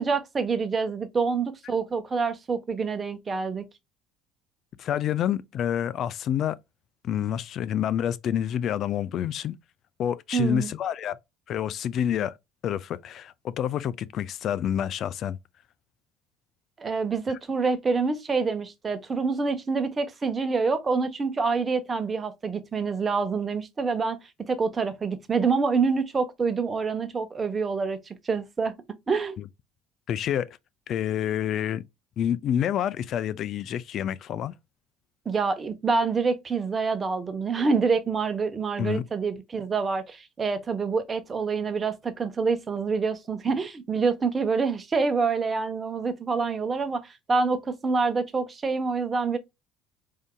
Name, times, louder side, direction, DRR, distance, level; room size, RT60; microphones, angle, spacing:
voice 1, 0.0-3.6 10.3-10.7 16.8-24.2 24.5-28.7 29.1-29.4 35.3-49.4, right 4 dB, 30° right, 0.9 m, -26 dB
voice 2, 4.8-6.6 7.0-9.6 10.0-11.2 11.5-12.4 12.6-15.4 30.1-30.5 30.9-31.8 32.2-34.5 38.8-39.0, left 10 dB, 55° left, 0.3 m, -28 dB
4.8 x 2.7 x 2.2 m
supercardioid pair, 85°, 0 cm